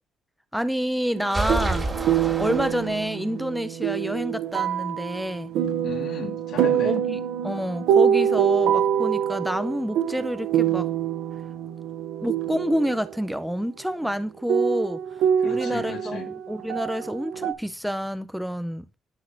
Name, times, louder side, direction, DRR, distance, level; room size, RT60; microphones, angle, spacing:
voice 1, 0.5-5.5 6.8-10.9 12.2-15.0 15.4-18.9, equal, ahead, 0.5 m, -28 dB
sound 1, 1.1-13.1 14.0-14.1 14.5-17.5, right 9 dB, 90° right, 0.6 m, -25 dB
sound 2, 1.3-3.4, right 2 dB, 20° right, 2.5 m, -29 dB
voice 2, 5.8-7.0 15.4-16.3, left 6 dB, 70° left, 1.9 m, -35 dB
10.5 x 6.4 x 2.6 m
cardioid pair, 90°, 0 cm